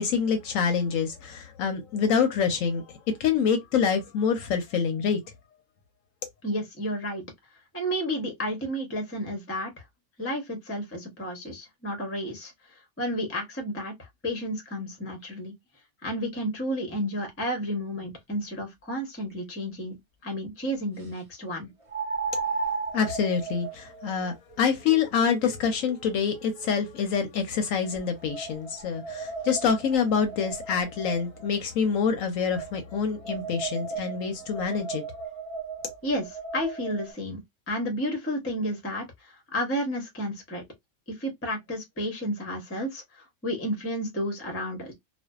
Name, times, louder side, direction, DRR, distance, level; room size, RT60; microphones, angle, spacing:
voice 1, 0.0-5.2 22.9-35.0, left 6 dB, 70° left, 0.9 m, -26 dB
voice 2, 6.4-7.2 7.7-9.8 10.2-15.5 16.0-20.0 20.2-21.7 36.0-37.4 37.7-40.6 41.1-44.9, equal, 15° left, 0.5 m, -32 dB
sound 1, 19.3-19.4 21.9-27.1 27.8-31.5 32.5-37.1, right 4 dB, 30° right, 0.7 m, -36 dB
2.5 x 2.2 x 2.2 m
omnidirectional pair, 1.6 m